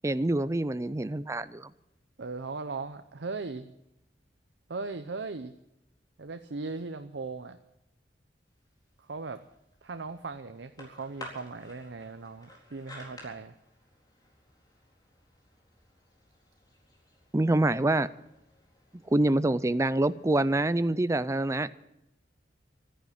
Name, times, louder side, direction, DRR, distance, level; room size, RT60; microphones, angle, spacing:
voice 1, 0.0-1.7 17.3-18.1 19.1-21.7, right 1 dB, 15° right, 0.5 m, -26 dB
voice 2, 2.2-3.7 4.7-5.5 6.2-7.6 9.1-9.4 9.8-13.5, right 3 dB, 80° right, 0.7 m, -38 dB
sound 1, 8.5-20.6, left 1 dB, 25° left, 4.1 m, -53 dB
13.5 x 10.0 x 9.9 m
head